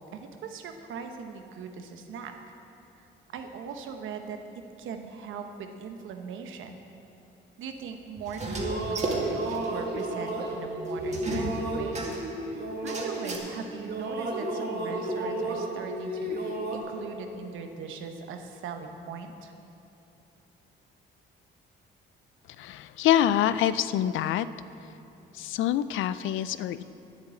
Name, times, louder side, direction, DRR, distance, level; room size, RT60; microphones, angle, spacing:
voice 1, 0.1-2.3 3.0-3.1 3.3-6.8 7.6-12.1 12.5-19.5, right 5 dB, 80° right, 5 dB, 1.0 m, -40 dB
sound 1, 8.2-13.5 13.8-16.8, right 1 dB, 55° right, 1.8 m, -32 dB
sound 2, 8.3-9.7 10.0-10.1 10.3-10.4 11.1-12.3 12.9-13.4, right 2 dB, 35° right, 2.1 m, -34 dB
voice 2, 22.6-24.5 25.3-26.8, left 11 dB, 80° left, 15 dB, 0.4 m, -25 dB
9.8 x 7.5 x 8.4 m, 2.9 s
cardioid pair, 90°, 20 cm